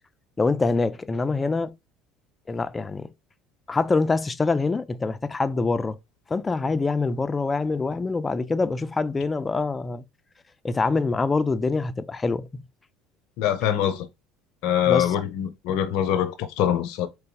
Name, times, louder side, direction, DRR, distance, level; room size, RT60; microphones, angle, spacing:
voice 1, 0.4-1.8 2.5-3.1 3.7-6.0 6.3-10.0 10.6-12.6 14.9-15.1, left 3 dB, 20° left, 0.4 m, -25 dB
voice 2, 13.4-14.1 14.6-17.1, left 10 dB, 70° left, 0.6 m, -23 dB
3.9 x 3.3 x 3.5 m
supercardioid pair, 85°, 0 cm